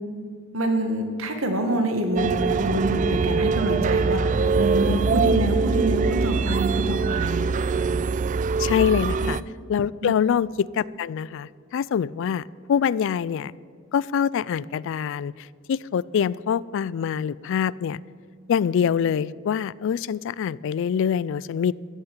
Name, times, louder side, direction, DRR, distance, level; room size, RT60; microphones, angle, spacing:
voice 1, 0.5-4.2 4.6-7.5 9.2-9.3 10.0-10.2, right 1 dB, 85° right, 5 dB, 1.8 m, -26 dB
sound 1, 2.2-9.4, right 4 dB, 40° right, 0.3 m, -23 dB
voice 2, 8.6-9.4 9.7-13.5 13.9-15.3 15.7-18.0 18.5-21.7, left 7 dB, 65° left, 21 dB, 0.3 m, -25 dB
14.0 x 6.7 x 8.7 m, 2.1 s
head